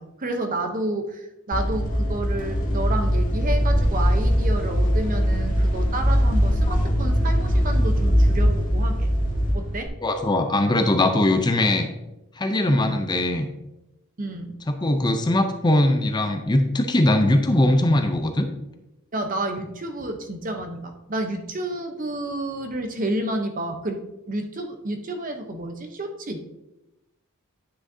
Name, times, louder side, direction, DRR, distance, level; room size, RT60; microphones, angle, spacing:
voice 1, 0.0-9.1 9.5-9.9 12.7-12.9 14.2-14.6 19.1-26.4, right 1 dB, 40° right, 6 dB, 0.8 m, -30 dB
sound 1, 1.5-9.9, equal, 40° left, 1.7 m, -21 dB
voice 2, 10.0-11.9 12.4-13.5 14.7-18.5, left 1 dB, 20° left, 6 dB, 0.5 m, -21 dB
9.7 x 6.2 x 2.7 m, 0.96 s
head